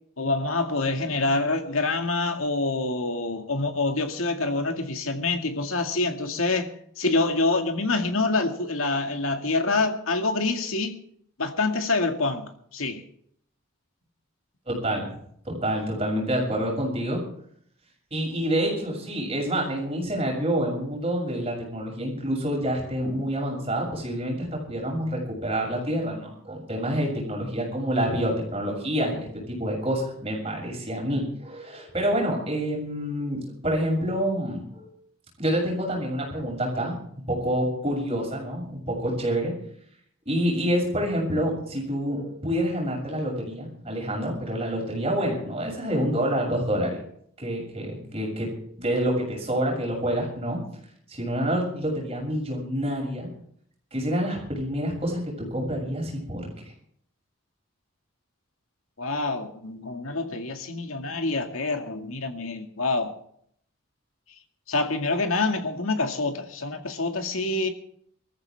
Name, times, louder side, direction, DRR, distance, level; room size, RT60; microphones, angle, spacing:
voice 1, 0.2-11.0 11.4-13.0 59.0-63.1 64.7-67.7, left 3 dB, 85° left, 2.2 m, -26 dB
voice 2, 14.7-15.1 15.4-17.2 18.1-34.9 35.4-36.9 37.3-39.5 40.3-47.0 47.4-48.5 48.8-50.6 51.1-53.3 53.9-56.5, equal, 30° right, 7.1 m, -27 dB
23.5 x 14.5 x 3.6 m
head